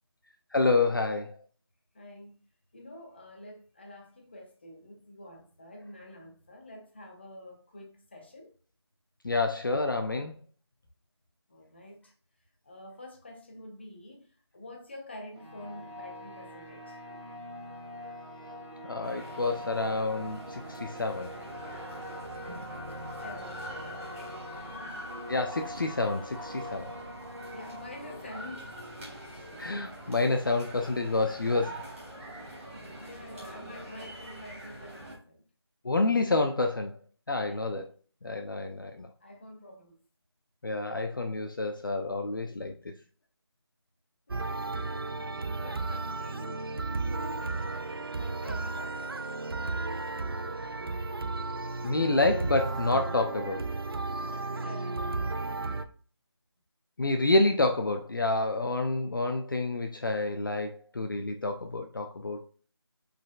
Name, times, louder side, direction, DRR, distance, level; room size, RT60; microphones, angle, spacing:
voice 1, 0.5-1.4 9.2-10.3 18.9-21.3 25.3-26.9 29.6-31.8 35.8-37.0 37.3-37.9 38.2-39.1 40.6-42.7 51.8-53.6 57.0-62.5, left 2 dB, 50° left, 0.5 m, -28 dB
voice 2, 1.9-2.4 2.7-8.5 11.5-12.1 12.6-17.0 23.2-24.6 27.5-28.7 33.0-35.4 37.4-37.6 39.2-40.0 44.3-44.4 45.5-49.2 54.2-55.4, left 1 dB, 25° left, 0.7 m, -47 dB
sound 1, 15.4-30.7, left 1 dB, 85° right, 2.1 m, -43 dB
sound 2, 19.0-35.2, right 1 dB, 30° right, 1.8 m, -45 dB
sound 3, 44.3-55.8, right 3 dB, 55° right, 0.5 m, -34 dB
5.2 x 4.1 x 2.3 m
figure-of-eight pair, 170°, 14 cm